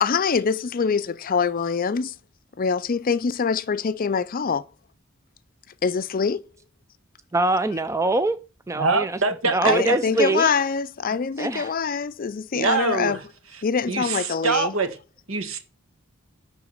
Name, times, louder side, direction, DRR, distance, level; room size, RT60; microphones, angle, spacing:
voice 1, 0.0-2.1 2.6-4.6 5.8-6.4 9.6-13.2 13.6-14.8, left 5 dB, 40° left, 0.5 m, -24 dB
voice 2, 7.3-8.4 8.7-9.2 9.5-10.5 11.4-11.7, right 2 dB, 15° right, 0.4 m, -23 dB
voice 3, 8.7-10.0 12.5-13.2 13.9-14.9 15.3-15.6, right 4 dB, 70° right, 1.6 m, -24 dB
11.5 x 3.9 x 7.4 m
head